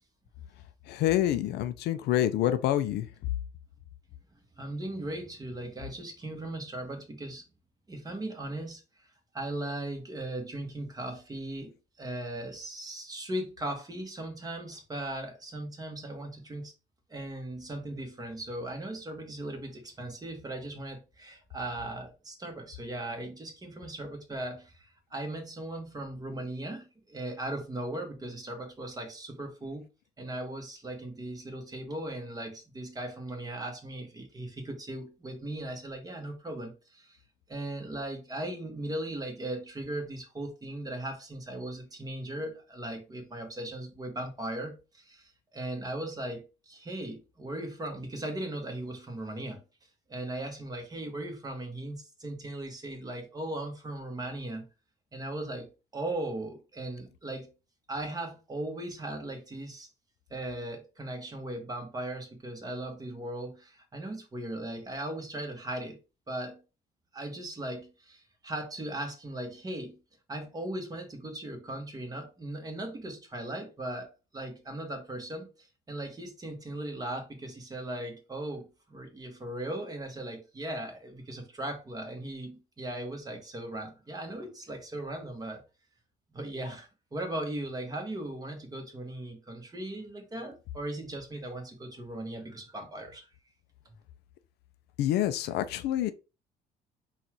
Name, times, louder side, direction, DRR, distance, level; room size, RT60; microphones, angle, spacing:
voice 1, 0.9-3.1 95.0-96.1, left 12 dB, 80° left, 0.5 m, -27 dB
voice 2, 4.6-7.4 7.9-8.8 9.3-16.7 17.1-29.9 30.2-37.2 37.5-45.2 45.5-49.6 50.1-54.7 55.1-57.5 57.9-59.9 60.3-66.0 66.3-66.6 67.1-70.0 70.3-75.5 75.9-85.6 86.3-93.3, right 1 dB, 20° right, 1.3 m, -38 dB
4.0 x 2.5 x 4.4 m
cardioid pair, 110°, 17 cm